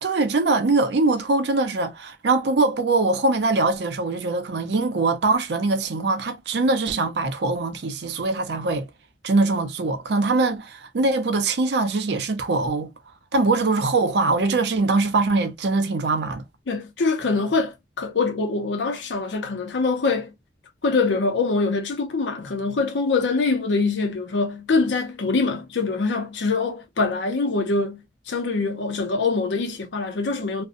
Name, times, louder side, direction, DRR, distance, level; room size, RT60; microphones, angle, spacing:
voice 1, 0.0-8.9 9.2-12.9 13.3-16.4, right 3 dB, 65° right, 0.5 m, -22 dB
voice 2, 16.7-20.3 20.8-30.6, left 3 dB, 85° left, 0.5 m, -24 dB
2.5 x 2.1 x 2.4 m
head